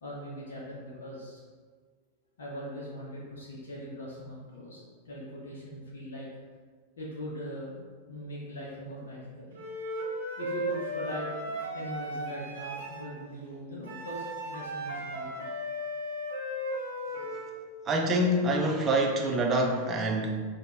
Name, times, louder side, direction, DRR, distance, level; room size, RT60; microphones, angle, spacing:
voice 1, 0.0-1.4 2.4-6.3 7.0-7.7 8.1-9.6 10.4-15.4, equal, 65° left, -5 dB, 0.7 m, -40 dB
Wind instrument woodwind instrument, 9.5-13.1 13.8-17.6, equal, 65° right, 0.7 m, -36 dB
voice 2, 17.9-20.3, right 1 dB, 25° right, 2 dB, 0.5 m, -26 dB
4.6 x 2.2 x 2.3 m, 1.5 s
figure-of-eight pair, 90°, 0 cm